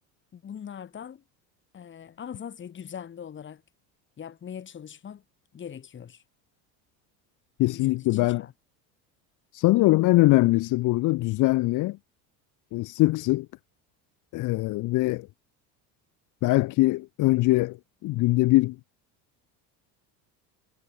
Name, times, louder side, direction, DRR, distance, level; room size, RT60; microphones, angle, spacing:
voice 1, 0.3-1.2 1.7-3.6 4.2-5.2 5.5-6.2 7.7-8.5, left 8 dB, 30° left, 2.4 m, -41 dB
voice 2, 7.6-8.5 9.5-12.0 12.7-13.5 14.3-15.3 16.4-18.8, left 19 dB, 50° left, 0.7 m, -22 dB
cardioid pair, 135°, 40 cm